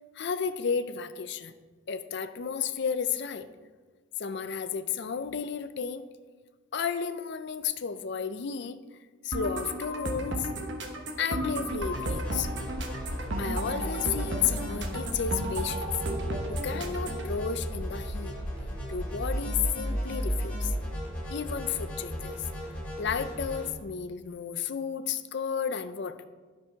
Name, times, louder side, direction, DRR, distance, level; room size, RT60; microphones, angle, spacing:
voice 1, 0.1-1.5 1.9-3.5 4.2-6.0 6.7-8.8 9.2-10.5 11.2-12.5 13.4-15.9 16.5-18.3 18.9-20.7 21.3-22.4 23.0-26.3, left 7 dB, 60° left, 11 dB, 0.5 m, -32 dB
sound 1, 9.3-17.3, right 1 dB, 60° right, 1.0 m, -34 dB
sound 2, 11.7-23.7, equal, 5° left, 3.1 m, -34 dB
9.9 x 6.2 x 4.5 m, 1.4 s
head